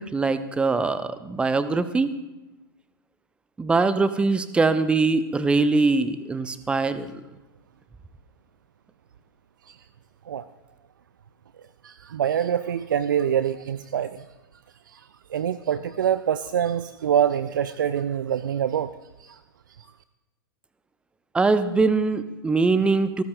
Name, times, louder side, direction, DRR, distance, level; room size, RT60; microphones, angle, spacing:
voice 1, 0.0-2.1 3.6-7.1 21.3-23.2, right 3 dB, 10° right, 13 dB, 0.6 m, -22 dB
voice 2, 11.8-14.3 14.9-18.9 19.2-19.4, right 9 dB, 60° right, 15 dB, 0.4 m, -25 dB
28.5 x 14.0 x 2.2 m, 1.0 s
figure-of-eight pair, 100°, 12 cm